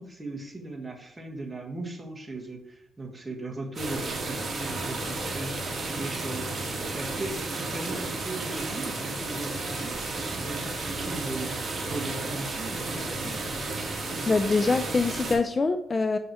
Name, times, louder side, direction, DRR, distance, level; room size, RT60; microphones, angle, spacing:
voice 1, 0.0-13.5, right 2 dB, 15° right, 1 dB, 1.5 m, -38 dB
sound 1, 3.8-15.4, right 2 dB, 35° right, 2.0 m, -32 dB
voice 2, 14.3-16.2, left 3 dB, 30° left, 10 dB, 0.4 m, -24 dB
6.4 x 5.4 x 4.5 m, 0.77 s
cardioid pair, 90°, 0 cm